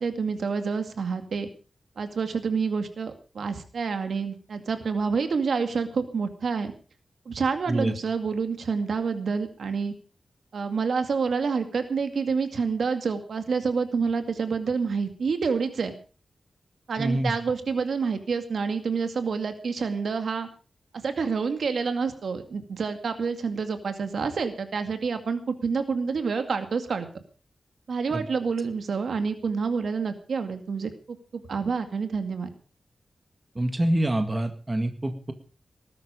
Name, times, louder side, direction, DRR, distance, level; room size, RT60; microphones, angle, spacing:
voice 1, 0.0-1.5 2.0-6.7 7.3-9.9 10.5-16.0 16.9-20.5 20.9-27.1 27.9-32.5, right 5 dB, 75° right, 8 dB, 2.2 m, -28 dB
voice 2, 17.0-17.3 28.1-28.2 33.6-35.3, right 1 dB, 20° right, 7 dB, 2.0 m, -26 dB
20.0 x 12.0 x 5.1 m, 0.37 s
wide cardioid pair, 145°, 0 cm